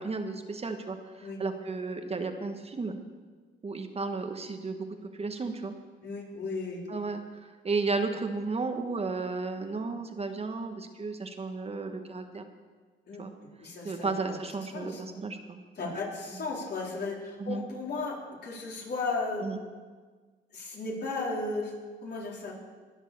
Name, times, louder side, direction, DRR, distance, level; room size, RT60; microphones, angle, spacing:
voice 1, 0.0-3.0 3.6-4.9 5.1-5.7 6.9-12.4 13.2-13.3 13.8-16.0 17.4-17.6 19.4-19.6, right 3 dB, 30° right, 6 dB, 1.3 m, -33 dB
voice 2, 6.0-6.8 13.1-14.1 14.7-15.0 15.8-19.4 20.5-21.7 22.0-22.5, left 3 dB, 55° left, -2 dB, 3.9 m, -35 dB
20.0 x 7.3 x 6.8 m, 1.5 s
cardioid pair, 90°, 20 cm